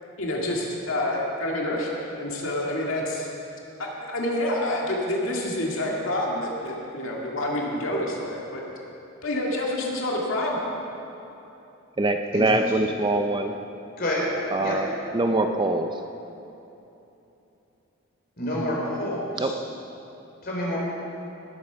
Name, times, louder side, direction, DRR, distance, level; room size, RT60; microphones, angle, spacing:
voice 1, 0.2-3.3 4.1-8.6 9.2-10.7, left 1 dB, 70° left, -2 dB, 2.2 m, -28 dB
voice 2, 12.0-13.5 14.5-14.9 15.1-16.0 19.4-19.5, right 2 dB, 20° right, 6 dB, 0.5 m, -23 dB
voice 3, 18.4-19.6 20.4-20.8, left 1 dB, 45° left, -4 dB, 3.8 m, -28 dB
19.0 x 8.5 x 5.8 m, 3.0 s
head